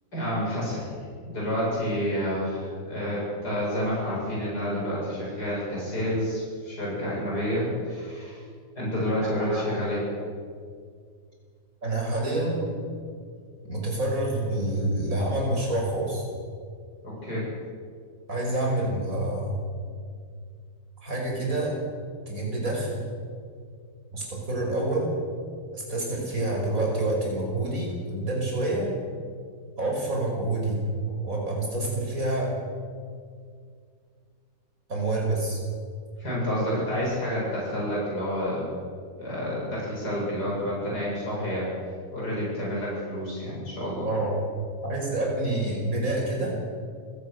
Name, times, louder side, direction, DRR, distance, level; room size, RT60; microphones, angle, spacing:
voice 1, 0.1-8.4 8.8-10.0 17.0-17.5 36.2-38.7 39.2-41.7 42.1-44.1, equal, 65° left, -5 dB, 8.7 m, -29 dB
voice 2, 9.2-9.6 11.8-12.7 13.6-16.2 18.3-19.6 21.0-21.8 22.3-23.0 24.1-25.1 25.7-28.9 29.8-32.5 34.9-35.6 44.0-44.4 44.8-46.6, right 2 dB, 50° right, -1 dB, 6.3 m, -27 dB
28.0 x 17.0 x 6.7 m, 2.1 s
omnidirectional pair, 1.9 m